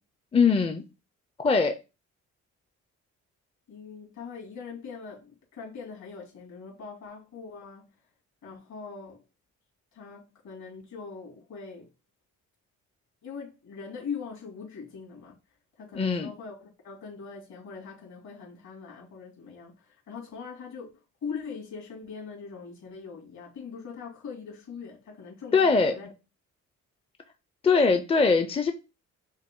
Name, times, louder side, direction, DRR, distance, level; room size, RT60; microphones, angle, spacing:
voice 1, 0.3-0.8 1.4-1.8 16.0-16.3 25.5-26.0 27.6-28.7, left 4 dB, 20° left, 0.5 m, -22 dB
voice 2, 3.7-7.9 8.4-9.2 9.9-11.9 13.2-15.4 15.8-26.1, left 5 dB, 65° left, 2.7 m, -41 dB
6.3 x 2.2 x 3.7 m
cardioid pair, 90°, 30 cm